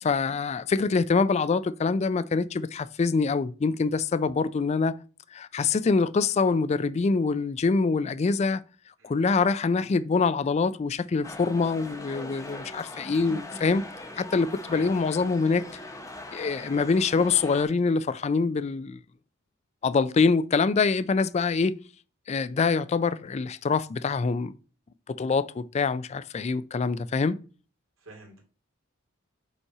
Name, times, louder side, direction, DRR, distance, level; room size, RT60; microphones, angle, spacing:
voice 1, 0.0-5.0 5.3-8.6 9.0-13.8 14.2-15.6 16.3-19.0 19.8-21.8 22.3-24.5 25.1-27.4, left 4 dB, 30° left, 0.3 m, -25 dB
sound 1, 11.2-17.6, left 1 dB, 15° left, 0.9 m, -41 dB
voice 2, 28.0-28.4, right 2 dB, 75° right, 2.3 m, -47 dB
5.4 x 4.2 x 4.7 m
head